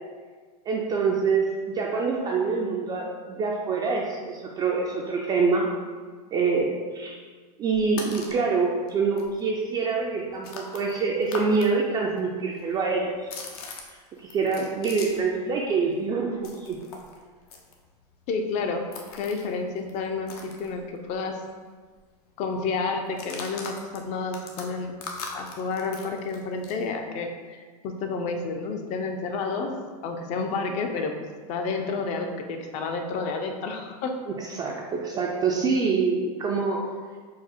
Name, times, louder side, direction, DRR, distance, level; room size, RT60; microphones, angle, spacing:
voice 1, 0.7-5.7 6.3-7.2 7.6-13.2 14.2-16.8 34.4-36.9, right 4 dB, 20° right, -2 dB, 0.3 m, -25 dB
sound 1, 7.7-8.4 8.9-9.0 9.2-11.7 12.0-15.4 15.6-21.3 21.6-21.7 21.9-22.3 23.0-26.8, left 4 dB, 75° left, 0.8 m, -41 dB
voice 2, 18.3-18.8 19.1-21.4 22.4-25.0 25.3-29.7 30.0-31.1 31.5-34.1, left 4 dB, 35° left, 5 dB, 0.5 m, -30 dB
4.6 x 2.0 x 4.3 m, 1.5 s
supercardioid pair, 130°, 20 cm